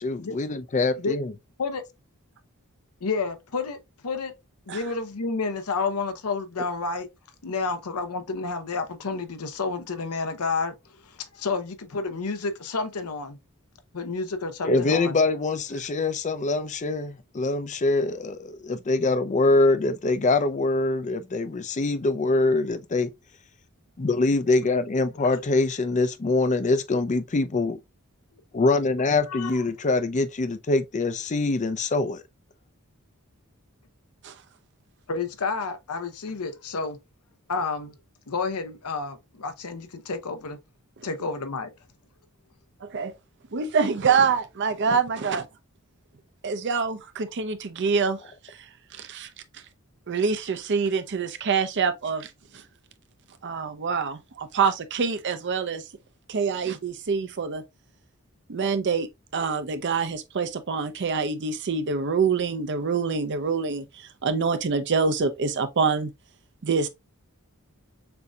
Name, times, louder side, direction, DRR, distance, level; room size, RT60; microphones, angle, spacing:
voice 1, 0.0-1.3 14.6-23.1 24.0-27.8 28.5-32.2, left 3 dB, 35° left, 0.5 m, -24 dB
voice 2, 3.0-4.3 4.7-7.1 7.4-10.7 11.1-13.4 13.9-15.2 25.2-25.4 29.3-29.6 35.1-37.0 37.5-37.9 38.3-40.6 41.0-41.7, left 4 dB, 85° left, 0.8 m, -30 dB
voice 3, 42.8-43.1 43.5-45.5 46.4-49.6 50.1-52.7 53.4-55.9 56.3-57.6 58.5-66.1 66.6-66.9, right 5 dB, 55° right, 0.6 m, -26 dB
6.8 x 2.7 x 2.3 m
head